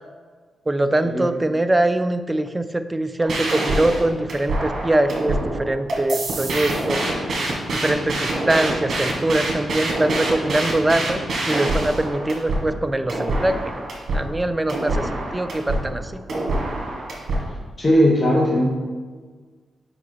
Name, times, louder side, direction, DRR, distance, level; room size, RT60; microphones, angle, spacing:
voice 1, 0.7-7.0 7.7-11.2 11.5-13.6 14.1-16.1, right 1 dB, 15° right, 10 dB, 0.4 m, -22 dB
sound 1, 3.2-17.5, right 2 dB, 60° right, 1.5 m, -26 dB
voice 2, 17.8-18.7, equal, 25° left, -2 dB, 1.0 m, -18 dB
5.0 x 4.9 x 4.6 m, 1.5 s
cardioid pair, 110°, 0 cm